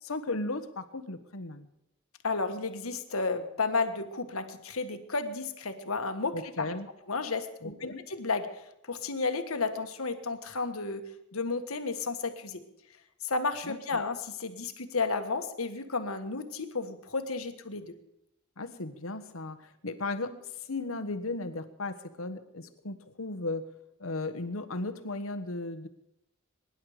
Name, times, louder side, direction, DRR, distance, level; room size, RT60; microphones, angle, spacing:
voice 1, 0.0-1.7 6.3-6.9 7.6-8.0 13.6-14.0 18.6-20.3 20.7-23.7 24.0-25.9, left 2 dB, 75° left, 9 dB, 1.4 m, -36 dB
voice 2, 2.2-6.7 7.1-12.6 13.2-17.9, left 4 dB, 90° left, 8 dB, 1.6 m, -32 dB
23.5 x 11.0 x 5.1 m, 0.84 s
head